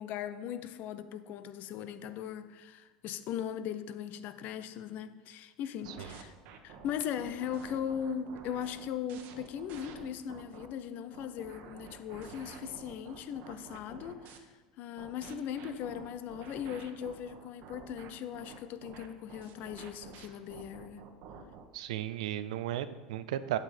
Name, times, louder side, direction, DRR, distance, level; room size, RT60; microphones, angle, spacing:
voice 1, 0.0-6.3 6.6-14.5 14.8-21.0, left 9 dB, 50° left, 12 dB, 0.7 m, -39 dB
sound 1, 5.8-10.7 11.1-14.4 15.0-21.7, right 6 dB, 50° right, 1.2 m, -50 dB
voice 2, 21.7-23.6, right 12 dB, 70° right, 13 dB, 0.5 m, -35 dB
9.0 x 8.0 x 4.4 m, 1.2 s
hypercardioid pair, 80°, 4 cm